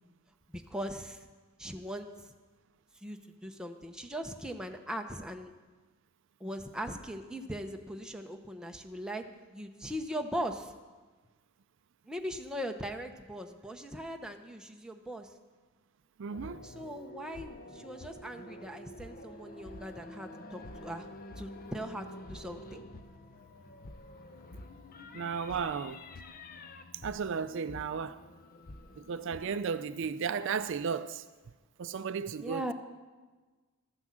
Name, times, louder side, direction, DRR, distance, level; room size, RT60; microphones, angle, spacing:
voice 1, 0.5-1.3 1.6-2.3 3.0-5.5 6.4-9.2 9.5-10.7 12.1-15.3 16.6-21.1 21.4-22.8 32.4-32.7, equal, 5° right, 0.8 m, -40 dB
voice 2, 16.2-16.6 25.1-26.0 27.0-28.2 29.1-31.2 31.8-32.6, right 6 dB, 60° right, 0.4 m, -34 dB
sound 1, 16.3-29.6, left 1 dB, 40° left, 0.7 m, -48 dB
13.0 x 9.7 x 7.5 m
head